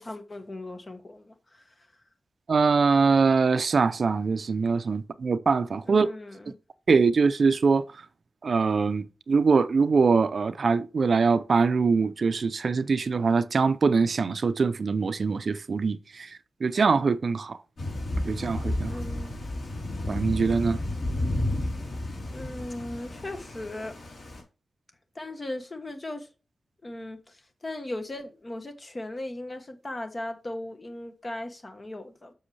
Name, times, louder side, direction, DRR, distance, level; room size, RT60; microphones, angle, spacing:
voice 1, 0.0-1.9 5.8-6.6 18.8-19.3 22.3-24.0 25.1-26.3 26.8-32.3, left 1 dB, 30° left, 1.2 m, -38 dB
voice 2, 2.5-6.1 6.9-7.8 8.4-17.6 18.3-19.0 20.1-20.8, right 4 dB, 50° right, 0.5 m, -23 dB
Thunder / Rain, 17.8-24.4, left 1 dB, 65° left, 4.1 m, -32 dB
7.6 x 6.3 x 3.3 m
wide cardioid pair, 155°, 0 cm